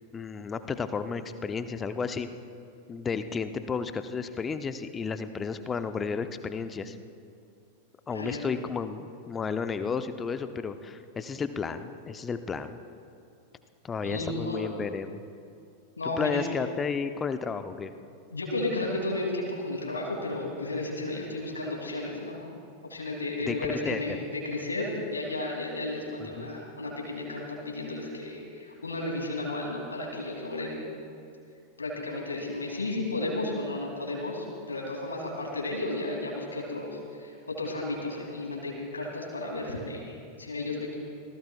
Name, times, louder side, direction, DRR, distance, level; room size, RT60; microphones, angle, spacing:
voice 1, 0.1-2.3 2.9-7.0 8.1-12.8 13.8-15.2 16.2-17.9 23.5-24.2 26.2-26.5, left 5 dB, 20° left, 10 dB, 0.7 m, -32 dB
voice 2, 14.0-14.7 16.0-16.4 18.3-22.5 22.9-30.8 31.8-40.9, left 2 dB, 75° left, -1 dB, 2.8 m, -33 dB
26.0 x 18.5 x 2.4 m, 2.5 s
figure-of-eight pair, 90°, 0 cm